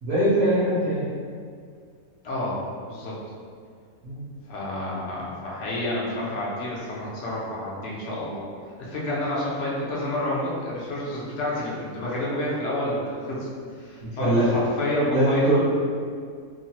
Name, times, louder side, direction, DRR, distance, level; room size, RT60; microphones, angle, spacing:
voice 1, 0.0-1.1 4.0-4.2 14.2-14.5 15.1-15.6, right 1 dB, 60° right, -10 dB, 1.0 m, -22 dB
voice 2, 2.2-3.2 4.5-8.4 8.8-13.5 13.8-15.6, left 1 dB, 60° left, -5 dB, 0.9 m, -29 dB
3.1 x 2.1 x 2.7 m, 2.1 s
omnidirectional pair, 1.6 m